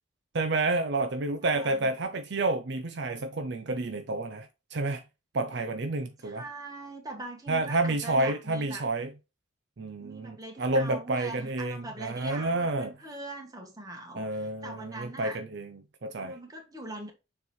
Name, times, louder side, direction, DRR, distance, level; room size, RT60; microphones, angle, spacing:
voice 1, 0.3-5.0 5.3-6.4 7.5-9.1 9.8-12.9 14.2-16.4, right 2 dB, 60° right, 0.6 m, -30 dB
voice 2, 1.4-1.9 6.2-8.9 10.0-15.4 16.2-17.1, right 2 dB, 20° right, 1.4 m, -42 dB
6.9 x 3.3 x 4.5 m
head